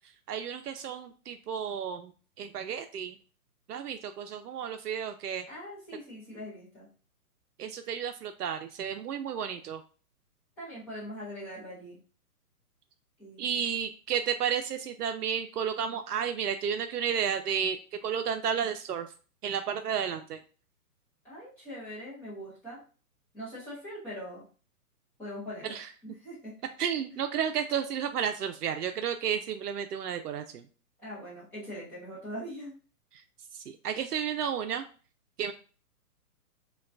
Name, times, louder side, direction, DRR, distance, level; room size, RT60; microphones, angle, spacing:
voice 1, 0.3-2.1 2.4-3.2 3.7-5.4 7.6-9.8 13.4-19.1 19.4-20.4 25.6-25.9 26.8-30.6 33.5-34.8 35.4-35.5, right 8 dB, 80° right, 7 dB, 0.6 m, -32 dB
voice 2, 5.5-6.9 10.6-12.0 13.2-13.6 21.2-22.8 23.3-24.5 25.2-25.8 26.0-26.6 31.0-32.7, equal, 5° left, -10 dB, 0.5 m, -42 dB
5.7 x 2.3 x 2.5 m, 0.37 s
hypercardioid pair, 150°, 46 cm